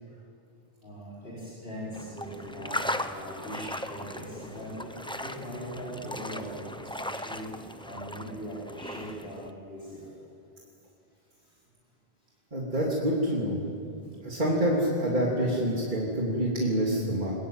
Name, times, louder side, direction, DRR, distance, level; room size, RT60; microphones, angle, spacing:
voice 1, 0.8-4.9 5.2-7.5 7.8-10.2, equal, 70° left, -8 dB, 5.1 m, -40 dB
sound 1, 1.9-9.5, left 1 dB, 5° left, 0.8 m, -38 dB
voice 2, 12.5-13.6 14.2-17.3, equal, 50° right, -4 dB, 3.4 m, -27 dB
23.0 x 21.0 x 9.1 m, 2.6 s
omnidirectional pair, 1.0 m